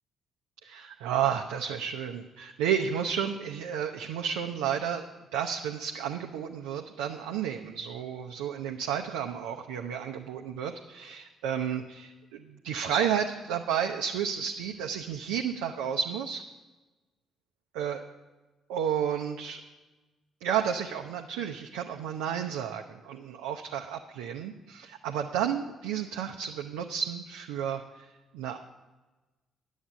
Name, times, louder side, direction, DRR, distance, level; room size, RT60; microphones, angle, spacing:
voice 1, 0.6-16.4 17.7-18.0 18.7-19.6 20.4-28.1 28.3-28.6, right 8 dB, 70° right, 3 dB, 0.5 m, -32 dB
9.9 x 7.2 x 7.1 m, 1.2 s
figure-of-eight pair, 45°, 0 cm